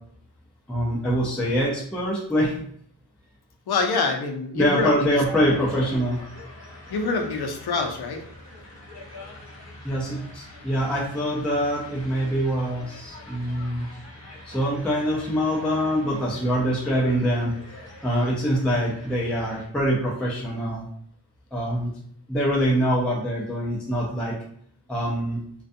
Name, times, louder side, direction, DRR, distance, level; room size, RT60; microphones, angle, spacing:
voice 1, 0.7-2.6 4.6-6.2 9.8-13.9 14.4-17.5 18.0-20.9 21.5-21.9 22.3-24.3 24.9-25.4, equal, 5° left, -5 dB, 0.4 m, -24 dB
voice 2, 3.7-5.2 6.9-8.2, left 4 dB, 65° left, 4 dB, 0.5 m, -26 dB
sound 1, 5.1-19.7, left 1 dB, 40° left, 1.0 m, -44 dB
2.5 x 2.2 x 2.5 m, 0.64 s
wide cardioid pair, 150°, 42 cm